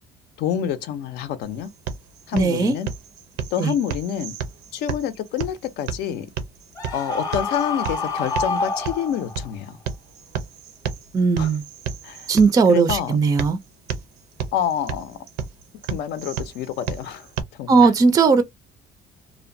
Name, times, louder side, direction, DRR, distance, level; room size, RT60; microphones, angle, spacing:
voice 1, 0.4-1.7 2.3-2.9 3.5-4.3 4.7-6.3 6.9-9.8 11.4-11.5 12.0-12.3 12.7-13.2 14.5-15.2 15.9-17.3 17.6-17.9, left 9 dB, 80° left, 0.6 m, -27 dB
sound 1, 1.4-17.4, right 7 dB, 80° right, 0.5 m, -34 dB
voice 2, 2.3-2.8 3.6-3.7 11.1-11.6 12.3-13.6 17.7-18.4, right 4 dB, 20° right, 0.4 m, -17 dB
Screaming, 6.8-9.5, left 3 dB, 20° left, 0.7 m, -27 dB
2.7 x 2.1 x 2.5 m
cardioid pair, 125°, 17 cm